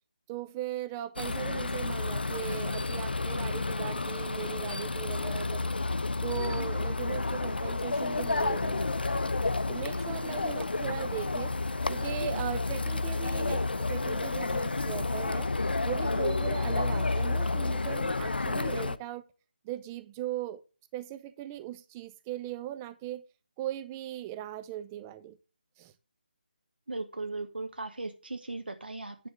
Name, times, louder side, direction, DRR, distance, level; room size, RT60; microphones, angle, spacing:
voice 1, 0.3-5.7 6.2-9.2 9.7-11.5 11.9-15.5 15.8-19.2 19.6-20.6 20.9-23.3 23.6-25.4 25.8-25.9, right 12 dB, 15° right, 0.4 m, -39 dB
sound 1, 1.2-19.0, left 3 dB, 80° left, 0.5 m, -30 dB
voice 2, 26.9-29.3, right 2 dB, 80° right, 1.0 m, -37 dB
9.8 x 3.6 x 6.2 m
figure-of-eight pair, 155°, 5 cm